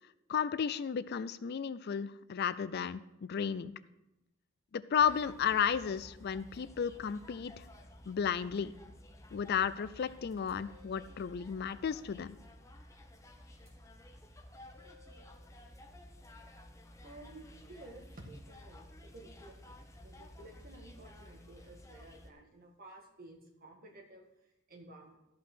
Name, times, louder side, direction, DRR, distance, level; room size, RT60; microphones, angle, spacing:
voice 1, 0.3-3.0 3.3-3.7 4.7-7.6 8.1-8.7 9.3-12.4, left 7 dB, 50° left, 15 dB, 0.4 m, -33 dB
sound 1, 5.0-22.3, left 1 dB, 15° left, 0.9 m, -54 dB
sound 2, 10.3-11.2 13.5-13.7 14.7-15.3, left 3 dB, 15° right, 3.6 m, -61 dB
voice 2, 17.0-25.2, right 1 dB, 45° right, 1 dB, 1.9 m, -54 dB
13.5 x 5.6 x 6.0 m, 0.91 s
head